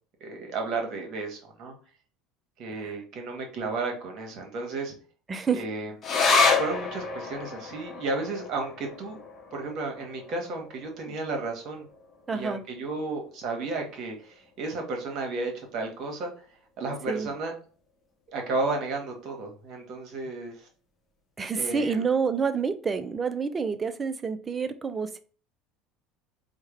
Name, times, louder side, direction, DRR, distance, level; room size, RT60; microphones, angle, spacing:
voice 1, 0.2-1.8 2.6-4.9 5.5-5.9 6.6-9.2 9.5-11.9 12.3-16.3 16.8-17.5 18.3-20.6 21.6-22.1, right 3 dB, 45° right, 1.1 m, -33 dB
voice 2, 5.3-5.6 12.3-12.6 17.1-17.3 21.4-25.2, right 5 dB, 25° right, 0.4 m, -28 dB
sound 1, 6.0-12.8 13.1-13.2 13.5-14.2 14.8-14.9, left 4 dB, 35° left, 0.8 m, -29 dB
4.6 x 2.1 x 3.2 m
figure-of-eight pair, 65°, 0 cm